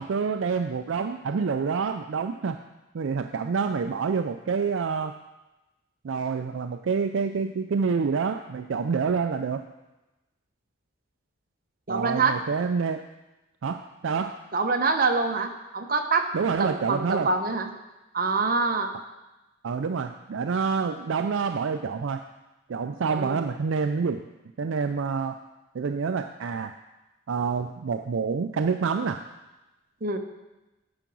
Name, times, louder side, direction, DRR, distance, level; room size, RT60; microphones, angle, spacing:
voice 1, 0.0-2.6 2.9-5.1 6.0-9.6 11.9-13.0 13.6-14.4 16.3-17.3 19.6-22.2 22.7-24.2 24.6-25.4 25.7-26.7 27.3-29.2, right 5 dB, 65° right, 6 dB, 0.4 m, -27 dB
voice 2, 11.9-12.4 14.5-16.3 16.6-17.7 18.1-18.9 23.2-23.4 30.0-30.2, right 4 dB, 45° right, 5 dB, 0.8 m, -25 dB
9.0 x 5.7 x 6.2 m, 1.0 s
head